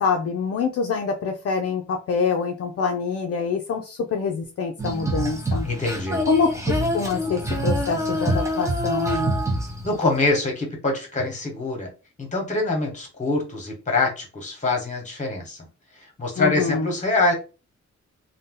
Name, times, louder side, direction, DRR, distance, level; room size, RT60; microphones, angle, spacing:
voice 1, 0.0-5.7 6.3-9.3 16.4-16.9, left 5 dB, 55° left, 2 dB, 0.4 m, -25 dB
Female singing, 4.8-10.2, equal, 10° right, 0.6 m, -25 dB
voice 2, 5.6-6.2 9.8-11.9 12.2-15.7 15.9-17.3, left 2 dB, 25° left, 1 dB, 1.1 m, -24 dB
2.6 x 2.2 x 3.7 m, 0.32 s
wide cardioid pair, 160°, 29 cm